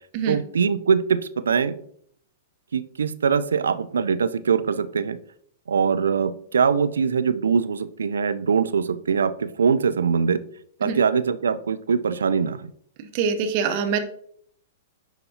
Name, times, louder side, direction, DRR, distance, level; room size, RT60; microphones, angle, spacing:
voice 1, 0.3-1.8 2.7-5.2 5.7-10.4 10.8-12.7, right 6 dB, 75° right, 13 dB, 0.4 m, -22 dB
voice 2, 13.0-14.0, right 6 dB, 45° right, 7 dB, 0.9 m, -24 dB
10.5 x 4.0 x 2.7 m, 0.65 s
figure-of-eight pair, 105°, 0 cm